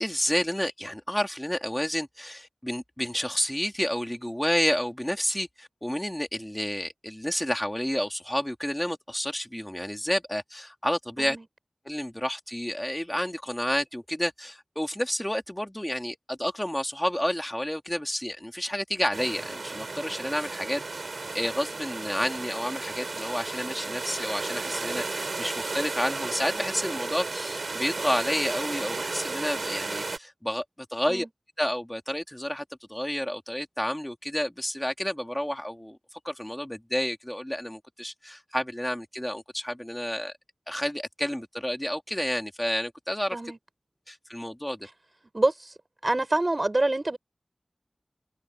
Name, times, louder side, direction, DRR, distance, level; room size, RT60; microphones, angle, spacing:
voice 1, 0.0-11.4 11.8-21.0 21.3-30.6 30.9-31.3 31.6-32.6 32.9-36.0 36.2-40.3 40.7-43.4 44.1-44.9, equal, 10° left, 3.1 m, -30 dB
sound 1, 19.1-30.2, right 3 dB, 85° right, 7.1 m, -34 dB
voice 2, 45.3-45.7 46.0-47.2, right 2 dB, 40° right, 4.7 m, -26 dB
wide cardioid pair, 60°, 0 cm